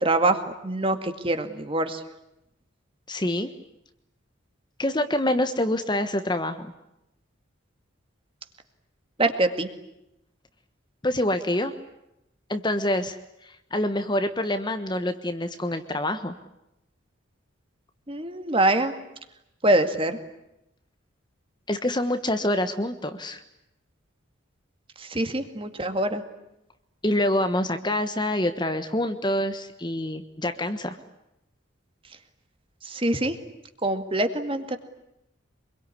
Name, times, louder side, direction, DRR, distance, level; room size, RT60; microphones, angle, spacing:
voice 1, 0.0-2.0 9.2-9.7 18.1-18.9 19.6-20.2 25.0-26.2 32.8-33.4 33.8-34.8, right 2 dB, 25° right, 8 dB, 2.2 m, -24 dB
voice 2, 3.1-3.5 4.8-6.7 11.0-11.7 12.5-13.2 13.4-16.3 21.7-23.4 27.0-31.0, left 1 dB, 20° left, 8 dB, 1.3 m, -26 dB
25.5 x 22.5 x 9.9 m, 0.86 s
head